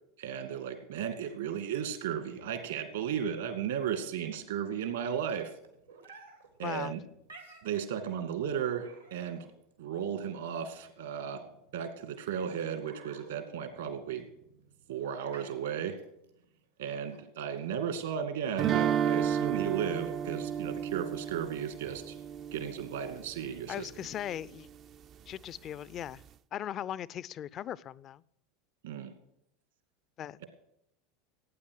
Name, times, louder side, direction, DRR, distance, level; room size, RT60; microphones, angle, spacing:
voice 1, 0.2-5.5 6.6-7.0 7.6-9.5 9.8-11.4 11.7-14.2 14.9-16.0 16.8-22.2 22.5-23.9 28.8-29.1, right 8 dB, 70° right, 9 dB, 2.2 m, -35 dB
sound 1, 2.2-18.2, right 4 dB, 90° right, 2.8 m, -57 dB
voice 2, 6.6-6.9 23.7-24.7 25.3-26.2 26.5-28.2 30.2-30.4, left 10 dB, 40° left, 21 dB, 0.5 m, -38 dB
sound 2, 18.6-23.5, right 8 dB, 40° right, 0.5 m, -32 dB
17.0 x 9.4 x 6.5 m, 0.76 s
figure-of-eight pair, 80°, 0 cm